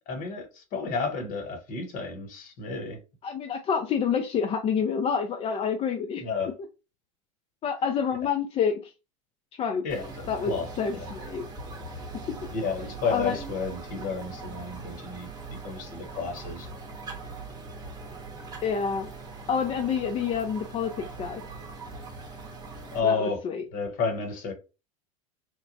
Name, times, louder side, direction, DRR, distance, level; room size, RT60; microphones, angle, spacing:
voice 1, 0.1-3.0 6.2-6.5 9.8-11.0 12.5-16.7 22.9-23.4 23.7-24.5, left 4 dB, 50° left, 1.0 m, -31 dB
voice 2, 3.2-6.2 7.6-8.9 9.5-9.9 10.3-10.5 10.8-11.5 13.1-13.4 18.6-19.1 19.5-21.4 23.0-23.6, left 6 dB, 35° left, 0.4 m, -28 dB
sound 1, 9.9-23.0, right 3 dB, 20° right, 0.8 m, -41 dB
3.1 x 2.1 x 2.6 m
hypercardioid pair, 85°, 18 cm